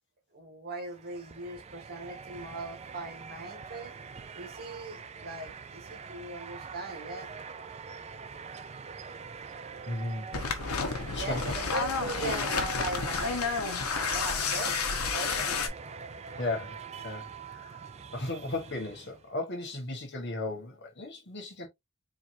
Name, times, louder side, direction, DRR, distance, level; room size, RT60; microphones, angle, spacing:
voice 1, 0.3-3.9 4.3-7.3 11.1-13.4 14.0-15.7, right 2 dB, 45° right, 1.7 m, -39 dB
sound 1, 0.8-19.3, right 5 dB, 30° right, 0.4 m, -44 dB
voice 2, 9.8-10.3 11.1-11.5 16.4-17.8 18.1-21.7, left 2 dB, 55° left, 1.4 m, -36 dB
sound 2, 10.3-15.7, left 5 dB, 90° left, 1.1 m, -30 dB
4.5 x 3.1 x 2.6 m
head